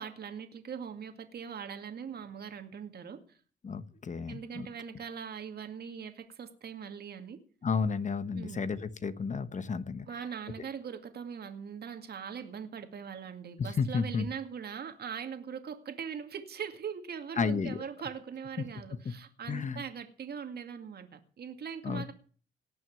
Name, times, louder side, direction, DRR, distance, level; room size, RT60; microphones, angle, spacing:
voice 1, 0.0-3.4 4.3-7.4 8.3-8.7 10.1-22.1, right 7 dB, 55° right, 7 dB, 2.2 m, -41 dB
voice 2, 3.6-4.7 7.6-10.1 13.6-14.3 17.4-17.8 19.0-19.1 19.5-19.8 21.8-22.0, left 5 dB, 40° left, 12 dB, 1.2 m, -32 dB
18.5 x 6.3 x 9.2 m, 0.42 s
cardioid pair, 90°, 20 cm